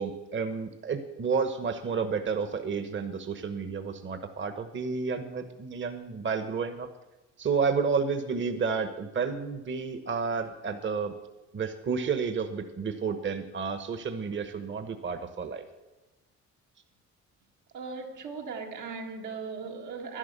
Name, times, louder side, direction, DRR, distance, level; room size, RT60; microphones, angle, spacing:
voice 1, 0.0-6.9 7.4-11.1 11.5-15.6, right 5 dB, 40° right, 1.1 m, -31 dB
voice 2, 17.7-20.2, right 5 dB, 80° right, 1.9 m, -38 dB
11.5 x 10.5 x 6.7 m
cardioid pair, 90°, 30 cm